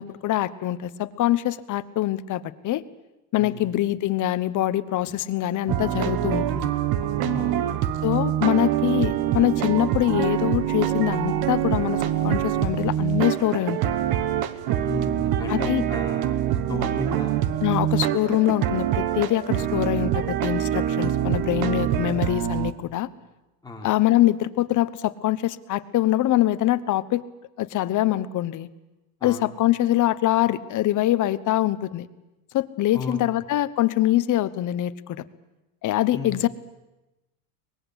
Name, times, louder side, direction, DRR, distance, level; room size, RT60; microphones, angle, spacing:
voice 1, 0.0-2.8 3.3-6.7 8.0-13.8 15.5-15.8 17.6-23.1 23.8-27.2 27.6-28.7 29.2-32.1 32.5-35.2 35.8-36.5, left 14 dB, 40° left, 14 dB, 1.1 m, -24 dB
sound 1, 5.7-22.7, right 11 dB, 55° right, 1.5 m, -25 dB
voice 2, 7.0-7.7 14.8-17.3 17.7-18.2 23.6-23.9 29.2-29.5 32.9-33.2 36.1-36.5, left 3 dB, 10° left, -1 dB, 3.8 m, -35 dB
23.5 x 20.5 x 8.1 m, 1.0 s
cardioid pair, 135°, 46 cm